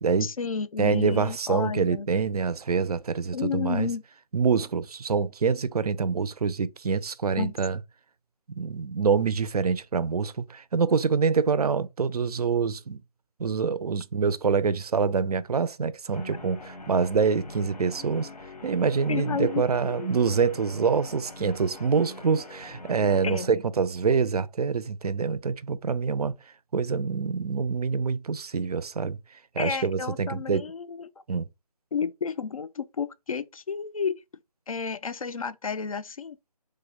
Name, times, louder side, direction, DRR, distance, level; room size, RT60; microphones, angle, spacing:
voice 1, 0.2-2.1 3.3-4.0 7.4-7.5 19.1-20.3 23.2-23.5 29.6-31.1 31.9-34.1 34.7-36.4, left 6 dB, 60° left, 0.4 m, -31 dB
voice 2, 0.8-3.9 4.3-7.8 8.6-13.0 13.4-18.3 18.6-26.3 26.7-30.7 31.3-31.5, right 5 dB, 75° right, 0.4 m, -26 dB
Guitar, 16.1-23.5, left 2 dB, 85° left, 0.9 m, -43 dB
3.3 x 2.1 x 3.5 m
figure-of-eight pair, 170°, 20 cm